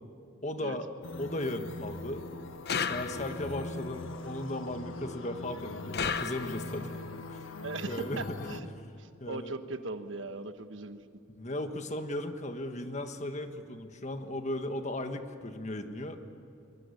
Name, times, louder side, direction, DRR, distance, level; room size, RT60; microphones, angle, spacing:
voice 1, 0.4-0.9 1.2-2.2 2.7-7.6 7.9-8.4 9.2-9.5 11.3-16.2, left 1 dB, 35° left, 7 dB, 1.5 m, -36 dB
sound 1, 1.0-8.6, left 2 dB, 80° left, 1.3 m, -41 dB
sound 2, 2.7-3.6 5.9-6.9, left 6 dB, 55° left, 0.9 m, -34 dB
voice 2, 7.6-8.7 9.0-11.0, right 3 dB, 65° right, 9 dB, 1.3 m, -39 dB
24.5 x 23.0 x 8.5 m, 2.4 s
head